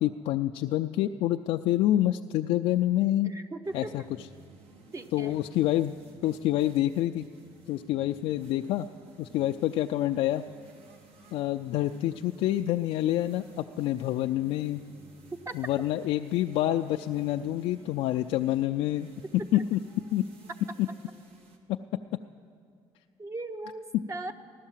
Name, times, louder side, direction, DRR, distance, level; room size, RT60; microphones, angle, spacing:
voice 1, 0.0-3.3 3.7-4.0 5.1-5.9 6.2-7.3 7.7-8.9 9.2-10.4 11.3-14.8 15.5-19.1 19.3-19.8 20.1-20.3 20.8-20.9, left 13 dB, 75° left, 5 dB, 0.4 m, -27 dB
voice 2, 3.2-3.9 4.9-5.4 15.5-15.6 19.5-19.6 23.2-24.3, right 2 dB, 30° right, 8 dB, 0.9 m, -38 dB
sound 1, 3.6-21.6, right 2 dB, 70° right, 1.7 m, -54 dB
15.5 x 11.5 x 7.4 m, 2.4 s
cardioid pair, 105°, 10 cm